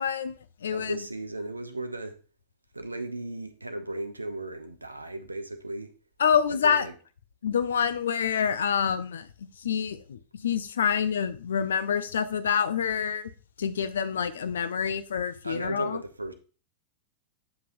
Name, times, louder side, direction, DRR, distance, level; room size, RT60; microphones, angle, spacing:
voice 1, 0.0-1.0 6.2-6.8 7.4-13.3 13.6-16.0, left 7 dB, 65° left, 0.5 m, -27 dB
voice 2, 0.7-2.2 2.7-5.9 6.6-6.9 15.4-16.3, right 2 dB, 85° right, 0.7 m, -36 dB
7.9 x 5.4 x 2.6 m
figure-of-eight pair, 90°, 0 cm